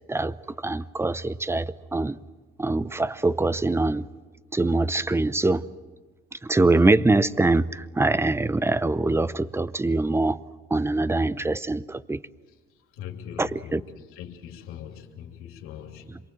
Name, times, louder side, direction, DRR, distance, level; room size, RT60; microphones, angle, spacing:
voice 1, 0.1-2.2 2.6-4.1 4.5-5.7 6.3-10.4 10.7-12.3 13.4-13.8 16.1-16.2, right 2 dB, 10° right, 0.7 m, -24 dB
voice 2, 12.9-16.1, left 9 dB, 90° left, 2.8 m, -41 dB
27.0 x 23.0 x 7.7 m
cardioid pair, 95°, 21 cm